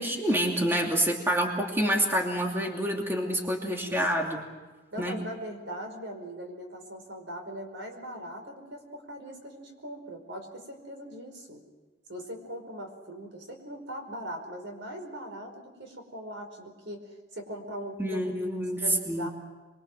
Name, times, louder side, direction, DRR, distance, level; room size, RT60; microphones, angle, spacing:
voice 1, 0.0-4.5 5.0-5.2 18.0-19.3, equal, 10° right, 0 dB, 2.7 m, -27 dB
voice 2, 3.6-4.0 4.9-11.6 12.1-18.3 18.8-19.3, right 1 dB, 80° right, 4 dB, 4.9 m, -40 dB
27.5 x 23.0 x 6.2 m, 1.3 s
head